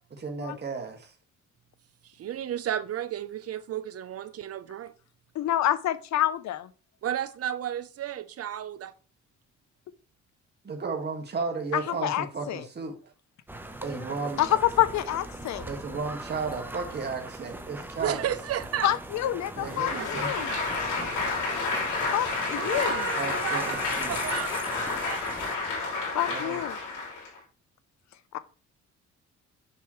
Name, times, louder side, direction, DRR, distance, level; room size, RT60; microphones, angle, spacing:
voice 1, 0.2-1.1 10.6-12.9 13.8-14.4 15.7-18.3 19.5-20.3 23.1-24.2 26.3-26.8, right 4 dB, 35° right, 1.8 m, -34 dB
voice 2, 2.0-4.9 7.0-8.9 18.0-18.9 19.7-21.1 22.5-25.4, right 10 dB, 50° right, 0.7 m, -34 dB
voice 3, 5.4-6.7 11.7-12.6 14.4-15.7 18.8-20.6 22.1-23.1 26.1-26.7, left 12 dB, 65° left, 0.7 m, -27 dB
sound 1, 13.5-25.6, right 1 dB, 5° right, 0.9 m, -40 dB
Applause, 19.6-27.4, left 3 dB, 85° left, 3.1 m, -30 dB
7.0 x 5.7 x 3.1 m
cardioid pair, 90°, 30 cm